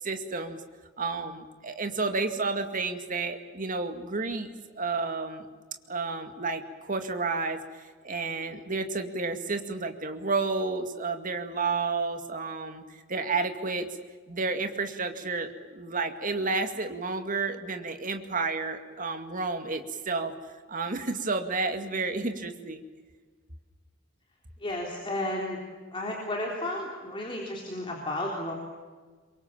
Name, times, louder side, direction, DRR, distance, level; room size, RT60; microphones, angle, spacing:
voice 1, 0.0-0.6 1.0-5.5 5.9-12.8 13.1-13.9 14.3-20.3 20.7-22.8, right 3 dB, 40° right, 6 dB, 2.2 m, -31 dB
voice 2, 24.6-25.6 25.9-28.5, left 1 dB, 25° left, -1 dB, 3.8 m, -32 dB
26.5 x 24.0 x 7.3 m, 1.5 s
head